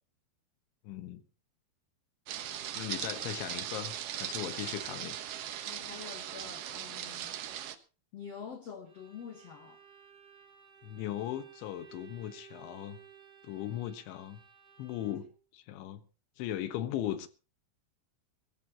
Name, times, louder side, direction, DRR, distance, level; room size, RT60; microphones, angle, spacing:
voice 1, 0.9-1.2 2.8-5.2 10.8-13.0 13.4-14.4 14.8-15.3 15.5-16.0 16.4-17.3, left 12 dB, 90° left, 3.7 m, -38 dB
sound 1, 2.3-7.8, right 11 dB, 70° right, 2.2 m, -39 dB
voice 2, 5.6-7.4 8.1-9.8, left 6 dB, 65° left, 1.6 m, -46 dB
Bowed string instrument, 8.9-15.4, right 7 dB, 30° right, 2.2 m, -57 dB
23.5 x 14.0 x 3.0 m
omnidirectional pair, 5.1 m